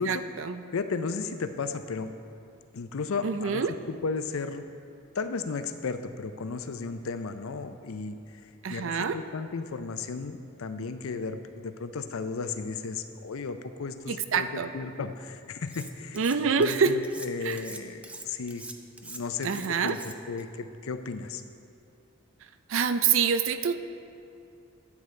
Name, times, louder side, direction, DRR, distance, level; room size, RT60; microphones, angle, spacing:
voice 1, 0.0-0.6 3.2-3.7 8.6-9.2 14.1-14.7 16.1-16.9 17.4-17.6 19.4-20.0 22.7-23.8, right 6 dB, 70° right, 11 dB, 0.5 m, -26 dB
voice 2, 0.7-2.1 2.7-3.6 4.0-4.7 5.1-16.2 16.6-18.6 19.0-21.4, left 4 dB, 90° left, 9 dB, 0.5 m, -34 dB
Cutlery silverware, 15.7-16.4 16.6-20.4, right 2 dB, 5° right, 0.3 m, -43 dB
13.0 x 8.3 x 3.3 m, 2.5 s
head